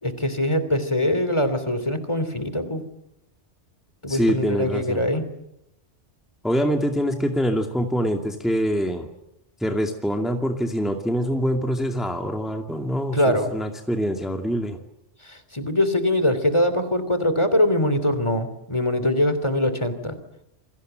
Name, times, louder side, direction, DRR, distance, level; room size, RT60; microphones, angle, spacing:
voice 1, 0.0-2.8 4.0-5.3 13.1-13.5 15.2-20.2, left 1 dB, 25° left, 11 dB, 3.1 m, -23 dB
voice 2, 4.1-5.0 6.4-9.1 9.6-14.8, equal, ahead, 4 dB, 2.3 m, -24 dB
28.5 x 24.5 x 7.9 m, 0.83 s
omnidirectional pair, 1.2 m